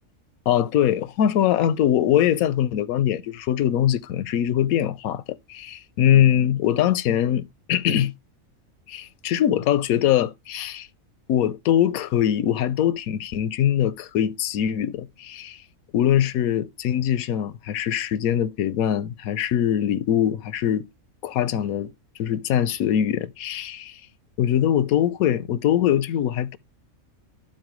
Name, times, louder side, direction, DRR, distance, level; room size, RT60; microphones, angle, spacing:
voice 1, 0.5-5.2 5.5-8.1 8.9-10.9 11.3-15.6 15.9-20.9 21.2-21.9 22.2-24.0 24.4-26.6, left 10 dB, 85° left, 1.0 m, -22 dB
12.0 x 4.4 x 3.0 m
omnidirectional pair, 1.5 m